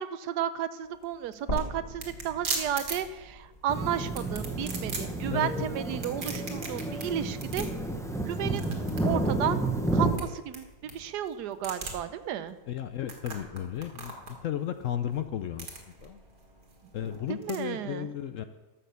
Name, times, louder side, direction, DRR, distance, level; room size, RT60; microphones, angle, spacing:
voice 1, 0.0-7.7 8.2-8.7 9.0-9.6 9.9-12.6 17.3-18.1, right 10 dB, 80° right, 13 dB, 1.2 m, -33 dB
sound 1, 0.8-17.6, right 4 dB, 65° right, 2.1 m, -41 dB
sound 2, 1.5-5.6 6.0-6.1 7.5-7.6, equal, 25° left, 1.3 m, -40 dB
sound 3, 3.7-10.2, right 2 dB, 5° left, 0.7 m, -31 dB
voice 2, 5.3-5.7 12.7-16.2 16.9-18.4, left 10 dB, 70° left, 10 dB, 0.8 m, -34 dB
12.5 x 7.0 x 6.8 m, 1.1 s
omnidirectional pair, 1.7 m